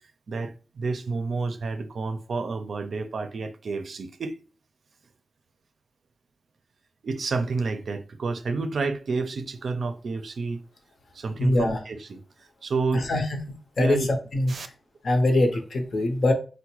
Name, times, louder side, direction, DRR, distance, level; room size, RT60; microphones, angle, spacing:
voice 1, 0.3-4.4 7.0-10.6 11.1-12.2 12.6-13.1 13.8-14.1 14.5-14.7, right 4 dB, 80° right, 0.4 m, -30 dB
voice 2, 11.4-11.8 13.1-13.2 13.8-14.5 15.0-16.3, left 1 dB, 65° left, 0.7 m, -22 dB
4.5 x 2.1 x 2.9 m
wide cardioid pair, 120°, 0 cm